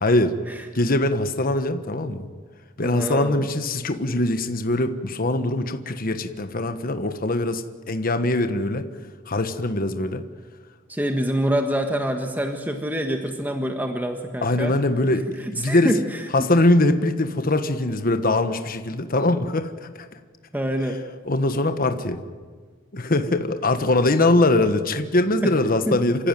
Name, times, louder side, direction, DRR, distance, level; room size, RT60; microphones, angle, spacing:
voice 1, 0.0-0.4 0.7-2.3 2.8-8.9 9.3-10.2 14.4-15.2 15.5-15.9 16.3-19.9 21.3-22.2 22.9-26.3, left 2 dB, 45° left, 8 dB, 1.3 m, -22 dB
voice 2, 2.8-3.5 10.9-14.7 15.5-16.5 17.9-18.0 20.5-21.0 25.4-25.5 25.9-26.0, equal, 10° right, 4 dB, 1.5 m, -26 dB
27.5 x 15.0 x 9.1 m, 1.5 s
head